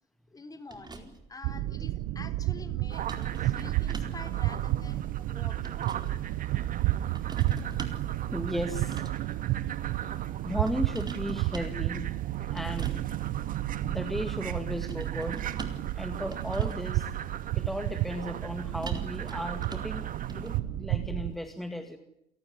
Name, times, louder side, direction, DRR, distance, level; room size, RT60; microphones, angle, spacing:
voice 1, 0.3-5.8, left 3 dB, 20° left, 9 dB, 4.0 m, -48 dB
sound 1, 0.7-1.3 3.1-4.3 5.3-6.1 7.1-8.1 8.8-9.3 10.7-11.8 12.6-13.0 14.9-15.9 16.3-16.9 18.8-20.0 20.3-20.5, right 3 dB, 25° right, 4.4 m, -43 dB
sound 2, 1.4-21.3, right 15 dB, 85° right, 1.0 m, -32 dB
sound 3, 2.9-20.6, right 9 dB, 55° right, 2.1 m, -42 dB
voice 2, 8.3-9.1 9.7-10.2 10.4-12.1 12.5-13.0 13.8-15.4 16.0-17.1 17.5-22.0, equal, ahead, 6 dB, 2.3 m, -35 dB
29.5 x 18.0 x 9.6 m, 0.81 s
cardioid pair, 110°, 17 cm